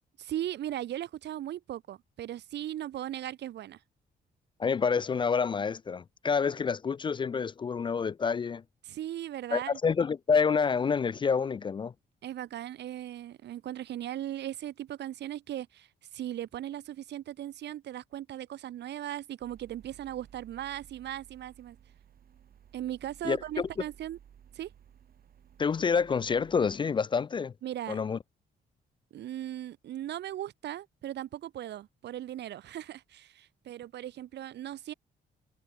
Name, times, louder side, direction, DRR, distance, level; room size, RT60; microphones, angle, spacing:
voice 1, 0.2-3.8 8.8-9.8 12.2-21.8 22.7-24.2 24.5-24.7 27.6-28.0 29.1-34.9, right 12 dB, 85° right, 3.4 m, -38 dB
voice 2, 4.6-8.6 9.5-11.9 23.2-23.7 25.6-27.5 27.9-28.2, left 5 dB, 30° left, 0.4 m, -28 dB
sound 1, 19.4-26.8, right 9 dB, 60° right, 6.6 m, -57 dB
cardioid pair, 125°, 18 cm